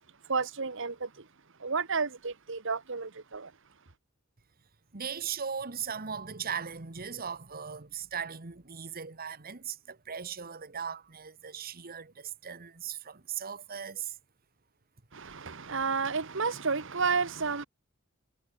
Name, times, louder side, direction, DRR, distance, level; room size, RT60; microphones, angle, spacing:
voice 1, 0.3-1.3 1.6-3.5 15.1-17.7, right 5 dB, 65° right, 1.5 m, -31 dB
voice 2, 4.9-14.2, right 7 dB, 45° right, 1.5 m, -38 dB
head